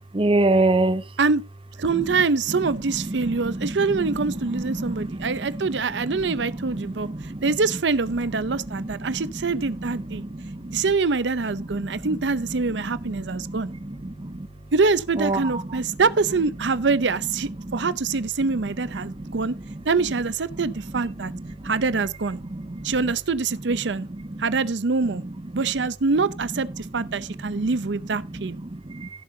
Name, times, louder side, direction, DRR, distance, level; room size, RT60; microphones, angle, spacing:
voice 1, 0.1-1.0 1.9-2.0 2.9-5.6 5.9-7.5 8.7-10.8 11.6-12.2 12.7-14.5 15.2-15.8 17.6-17.9 19.0-19.6 21.3-21.7 22.5-22.9 24.3-24.4 25.0-25.2 27.1-27.6 28.3-29.1, right 2 dB, 30° right, 0.7 m, -29 dB
voice 2, 1.8-10.2 10.7-13.7 14.7-19.5 19.8-21.3 21.6-22.4 22.8-24.1 24.4-25.2 25.5-28.6, right 4 dB, 80° right, 0.7 m, -24 dB
sound 1, 7.9-23.4 25.7-27.8, right 1 dB, 75° left, 5.1 m, -48 dB
16.5 x 7.6 x 2.8 m
head